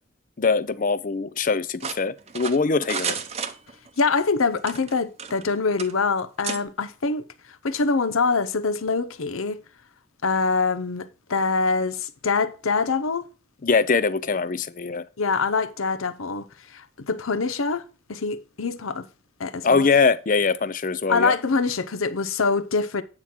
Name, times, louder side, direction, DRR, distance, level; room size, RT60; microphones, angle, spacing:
voice 1, 0.4-3.2 13.6-15.0 19.6-21.3, left 4 dB, 40° left, 0.5 m, -22 dB
sound 1, 1.8-4.0 4.6-5.5 5.8-5.9 6.4-6.6, right 6 dB, 30° right, 0.7 m, -32 dB
voice 2, 4.0-7.3 7.6-9.6 10.2-13.3 15.2-17.8 18.1-19.1 19.4-19.9 21.1-23.0, left 4 dB, 85° left, 0.8 m, -24 dB
8.9 x 6.1 x 4.4 m
head